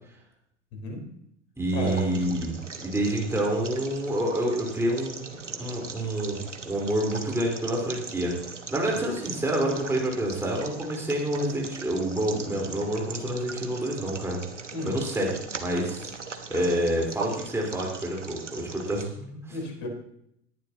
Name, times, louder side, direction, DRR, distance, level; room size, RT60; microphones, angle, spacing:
voice 1, 0.7-1.1 1.7-2.3 8.9-9.0 14.7-15.0 19.5-19.9, left 2 dB, 50° left, 2 dB, 4.0 m, -33 dB
voice 2, 1.6-8.3 8.7-14.4 14.8-15.3 15.6-16.1 16.5-19.4, right 1 dB, 5° right, -2 dB, 4.2 m, -28 dB
sound 1, 1.6-19.1, right 4 dB, 85° right, 1.2 m, -40 dB
18.5 x 11.0 x 2.9 m, 0.73 s
figure-of-eight pair, 85°, 35 cm